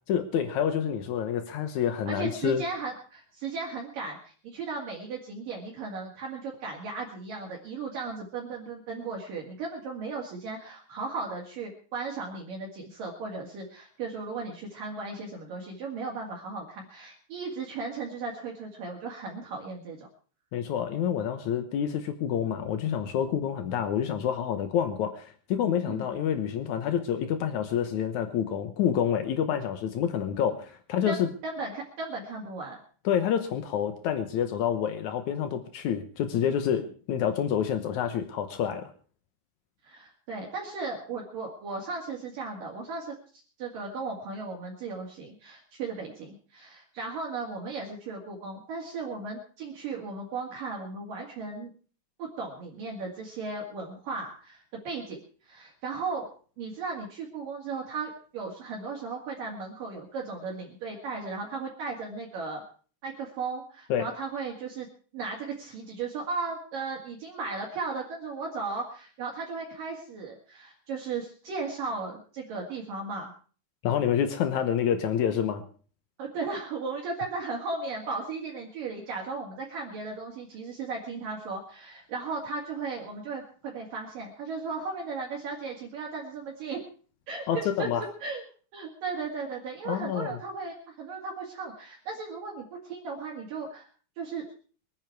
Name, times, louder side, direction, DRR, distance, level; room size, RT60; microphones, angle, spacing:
voice 1, 0.1-2.6 20.5-31.3 33.0-38.9 63.9-64.1 73.8-75.6 87.5-88.1 89.8-90.4, left 9 dB, 85° left, 8 dB, 1.6 m, -28 dB
voice 2, 2.1-20.1 25.9-26.1 31.0-32.8 39.8-43.2 43.6-51.7 52.2-55.2 55.4-56.3 56.6-62.6 63.0-64.9 65.1-73.3 76.2-86.8 87.3-87.9 88.2-88.4 88.7-93.9 94.2-94.4, right 4 dB, 55° right, -1 dB, 3.5 m, -36 dB
24.0 x 9.4 x 4.7 m, 0.41 s
omnidirectional pair, 5.0 m